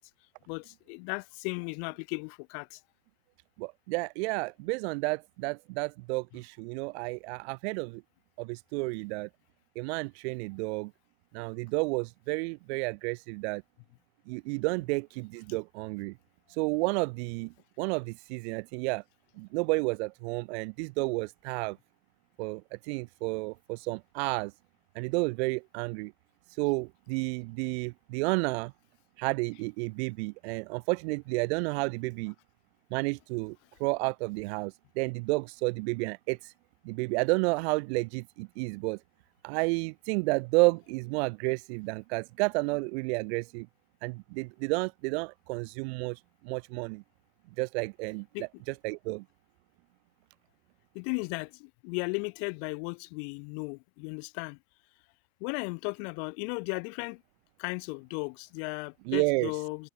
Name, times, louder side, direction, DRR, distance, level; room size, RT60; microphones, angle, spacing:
voice 1, 0.5-2.8 48.3-48.4 50.9-54.6 55.4-57.2 57.6-59.9, left 37 dB, 50° left, 6.0 m, -36 dB
voice 2, 3.6-8.0 8.4-9.3 9.7-10.9 11.3-13.6 14.3-16.1 16.5-19.0 19.4-21.8 22.4-24.5 24.9-26.1 26.6-28.7 29.2-32.3 32.9-36.5 36.8-39.0 39.4-43.7 44.0-47.0 47.6-49.2 59.1-59.5, right 27 dB, 50° right, 2.8 m, -31 dB
figure-of-eight pair, 100°, 42 cm